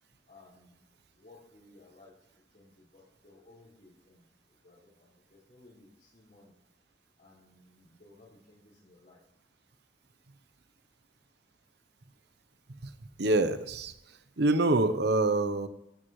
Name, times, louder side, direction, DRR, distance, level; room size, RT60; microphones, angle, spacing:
voice 1, 0.3-0.8 1.2-2.1 2.5-4.3 4.6-6.6 7.2-9.2, left 2 dB, 50° left, -5 dB, 5.4 m, -58 dB
voice 2, 13.2-13.9 14.4-15.7, right 2 dB, 65° right, 12 dB, 0.8 m, -25 dB
15.5 x 12.5 x 3.2 m, 0.83 s
head